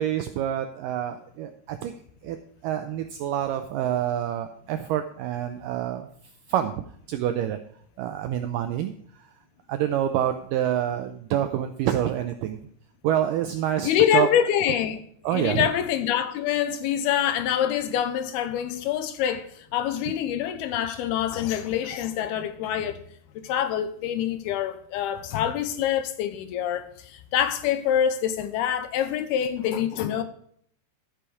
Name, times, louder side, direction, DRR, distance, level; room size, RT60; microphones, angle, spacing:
voice 1, 0.0-1.9 2.2-2.4 2.6-6.1 6.5-6.7 7.1-7.6 8.0-8.9 9.7-12.6 13.0-14.3 15.2-15.7, right 11 dB, 85° right, 1.9 m, -27 dB
voice 2, 13.8-15.0 15.3-23.0 23.4-30.2, left 10 dB, 85° left, 2.7 m, -25 dB
14.0 x 7.1 x 4.9 m
omnidirectional pair, 4.6 m